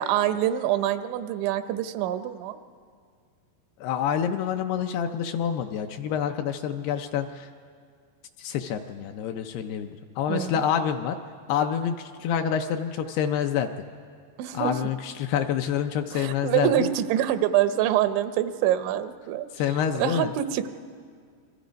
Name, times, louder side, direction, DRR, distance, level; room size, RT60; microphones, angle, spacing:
voice 1, 0.0-2.6 10.3-10.5 14.4-14.7 16.1-19.5 20.0-20.7, right 11 dB, 90° right, 10 dB, 3.2 m, -25 dB
voice 2, 3.8-7.5 8.4-11.2 11.5-13.7 14.5-16.9 19.5-20.3, left 8 dB, 80° left, 6 dB, 2.4 m, -27 dB
27.5 x 23.5 x 5.2 m, 2.1 s
omnidirectional pair, 5.1 m